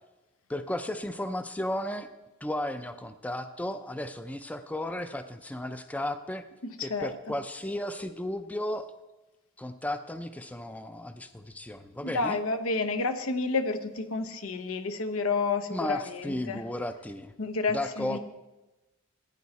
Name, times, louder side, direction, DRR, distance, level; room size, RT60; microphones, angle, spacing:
voice 1, 0.5-2.1 2.4-6.4 6.8-8.9 9.6-12.4 15.7-17.3 17.7-18.2, left 1 dB, 5° left, 9 dB, 0.4 m, -34 dB
voice 2, 6.8-7.1 12.0-16.6 17.4-18.2, left 3 dB, 90° left, 8 dB, 0.9 m, -30 dB
16.0 x 9.3 x 4.1 m, 1.1 s
head